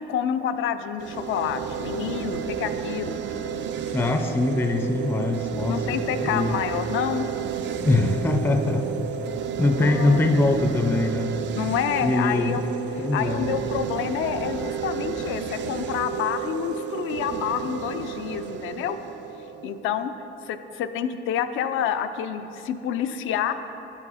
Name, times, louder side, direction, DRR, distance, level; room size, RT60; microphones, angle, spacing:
voice 1, 0.0-3.1 5.7-7.3 9.8-10.4 11.5-12.6 13.1-19.0 19.6-20.1 20.4-23.5, left 9 dB, 85° left, 10 dB, 0.4 m, -28 dB
sound 1, 1.0-20.1, right 7 dB, 65° right, 0.4 m, -31 dB
voice 2, 3.9-6.6 7.8-8.9 9.6-11.4 12.0-12.6 13.0-13.5, left 2 dB, 10° left, 6 dB, 0.4 m, -23 dB
8.4 x 4.6 x 4.9 m, 3.0 s
cardioid pair, 90°, 20 cm